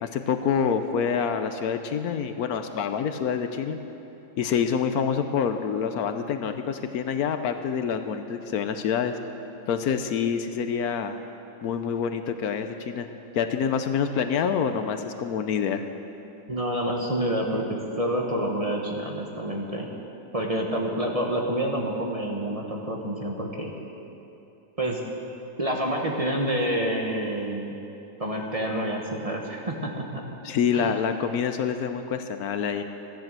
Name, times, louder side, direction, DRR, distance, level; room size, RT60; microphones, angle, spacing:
voice 1, 0.0-3.8 4.4-9.1 9.7-11.2 11.6-13.1 13.3-15.8 30.4-32.8, left 7 dB, 70° left, 8 dB, 1.1 m, -26 dB
voice 2, 16.5-19.9 20.3-23.7 24.8-25.0 25.6-27.7 28.2-30.3 30.7-31.0, right 1 dB, 25° right, 0 dB, 1.2 m, -28 dB
14.0 x 10.5 x 7.5 m, 2.9 s
omnidirectional pair, 1.7 m